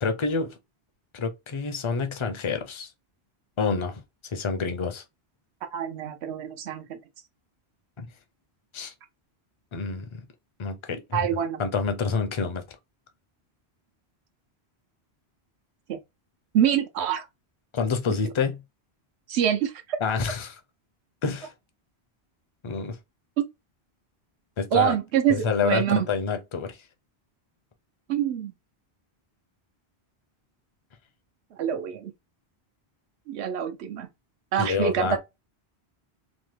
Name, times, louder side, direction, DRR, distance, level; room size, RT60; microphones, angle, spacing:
voice 1, 0.0-0.6 1.1-2.9 3.6-5.0 8.0-8.1 8.7-8.9 9.7-10.2 10.6-11.2 11.6-12.6 17.7-18.6 20.0-20.6 21.2-21.5 22.6-23.0 24.6-25.0 25.3-26.8 34.6-35.2, left 5 dB, 45° left, 0.4 m, -28 dB
voice 2, 5.7-7.0 11.1-11.6 15.9-16.0 16.5-17.3 19.3-20.0 23.4-23.5 24.7-26.1 28.1-28.5 31.6-32.1 33.3-34.1 34.5-35.2, right 9 dB, 90° right, 0.9 m, -25 dB
2.9 x 2.1 x 3.2 m
omnidirectional pair, 1.1 m